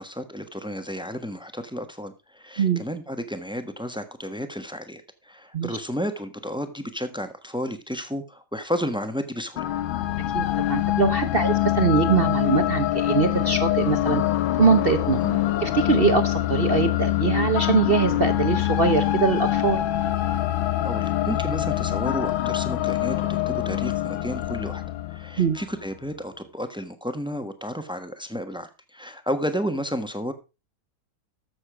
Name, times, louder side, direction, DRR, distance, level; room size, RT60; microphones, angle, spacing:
voice 1, 0.0-9.7 11.3-11.5 15.2-15.4 20.8-24.8 25.1-30.3, equal, 5° right, 9 dB, 0.7 m, -32 dB
sound 1, 9.6-25.8, left 14 dB, 70° left, 1.6 m, -25 dB
voice 2, 10.3-14.2 14.6-15.2 15.6-19.8 25.4-25.6, right 5 dB, 55° right, 8 dB, 0.6 m, -22 dB
14.0 x 7.0 x 4.8 m, 0.29 s
omnidirectional pair, 2.3 m